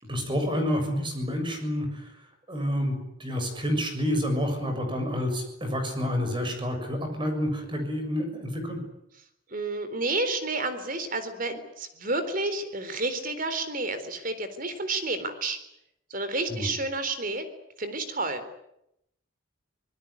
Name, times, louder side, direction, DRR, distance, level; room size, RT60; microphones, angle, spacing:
voice 1, 0.0-2.1 2.5-8.8 16.5-16.7, equal, 25° right, 6 dB, 6.9 m, -29 dB
voice 2, 9.5-15.6 16.1-17.5 17.8-18.4, right 2 dB, 45° right, 10 dB, 3.8 m, -30 dB
26.0 x 20.0 x 9.8 m, 0.80 s
head